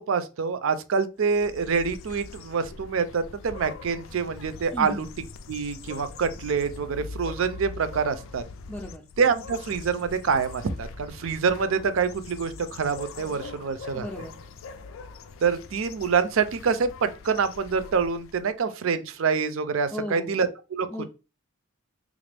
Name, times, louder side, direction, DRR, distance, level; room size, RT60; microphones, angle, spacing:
voice 1, 0.0-5.1 5.5-8.4 9.2-14.1 15.4-20.9, right 5 dB, 75° right, 0.4 m, -26 dB
sound 1, 1.2-18.5, left 4 dB, 75° left, 0.4 m, -42 dB
voice 2, 4.7-5.1 8.7-9.0 13.9-14.4 19.9-20.3 20.9-21.0, left 1 dB, 10° left, 0.4 m, -35 dB
3.5 x 2.5 x 3.3 m
head